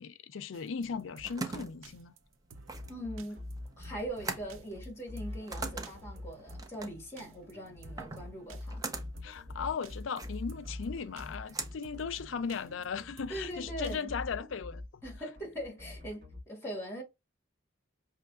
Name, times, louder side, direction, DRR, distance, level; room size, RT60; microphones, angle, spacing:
voice 1, 0.0-2.1 9.2-14.8, left 6 dB, 80° left, 0.4 m, -37 dB
sound 1, 0.5-14.0, right 3 dB, 85° right, 0.7 m, -54 dB
sound 2, 0.8-12.7, right 3 dB, 20° right, 0.6 m, -43 dB
sound 3, 2.7-16.4, left 1 dB, 55° right, 1.6 m, -44 dB
voice 2, 2.9-3.4 3.8-8.8 13.3-14.1 15.0-17.0, right 1 dB, 15° left, 1.8 m, -41 dB
5.7 x 3.0 x 2.4 m
head